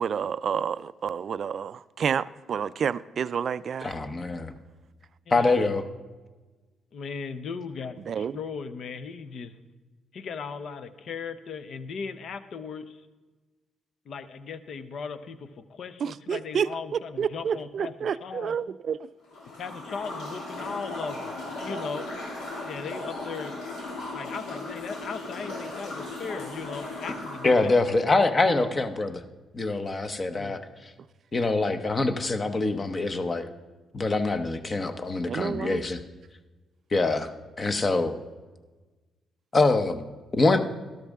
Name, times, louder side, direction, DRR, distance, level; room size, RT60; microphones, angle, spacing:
voice 1, 0.0-3.9 8.1-8.3 16.0-16.7 17.2-19.0 21.7-21.9 35.3-35.8, right 7 dB, 55° right, 0.3 m, -29 dB
voice 2, 3.8-4.5 5.3-5.8 27.4-29.2 29.5-30.6 31.3-33.5 33.9-36.0 36.9-37.3 37.6-38.1 39.5-40.0 40.3-40.6, left 3 dB, 30° left, 0.9 m, -24 dB
voice 3, 5.3-5.7 6.9-9.6 10.1-13.1 14.1-18.6 19.6-22.1 22.6-23.7 24.1-27.8 30.4-30.6, left 5 dB, 60° left, 0.8 m, -37 dB
sound 1, 19.3-28.0, left 2 dB, 80° left, 3.1 m, -37 dB
12.5 x 12.0 x 3.6 m
cardioid pair, 90°, 0 cm